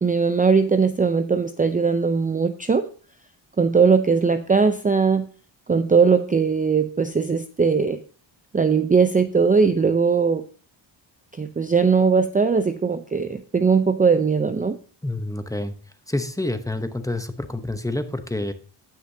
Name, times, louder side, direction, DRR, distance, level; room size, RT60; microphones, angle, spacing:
voice 1, 0.0-2.9 3.6-5.3 5.7-8.0 8.5-10.4 11.3-14.8, right 5 dB, 20° right, 9 dB, 0.5 m, -19 dB
voice 2, 15.0-15.7 16.1-18.5, left 1 dB, 5° left, 9 dB, 0.8 m, -28 dB
16.0 x 6.0 x 2.7 m, 0.38 s
cardioid pair, 90°, 47 cm